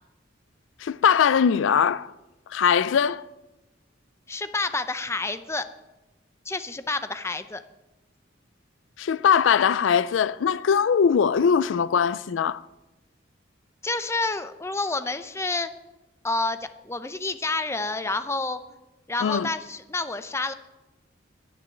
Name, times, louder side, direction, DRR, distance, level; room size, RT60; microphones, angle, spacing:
voice 1, 0.8-2.1 2.5-3.2 9.0-12.6 19.2-19.5, left 7 dB, 90° left, 0.4 m, -21 dB
voice 2, 4.3-5.7 6.5-7.6 13.8-15.7 16.2-18.6 19.1-20.5, left 3 dB, 15° left, 0.6 m, -29 dB
10.5 x 9.3 x 8.8 m
head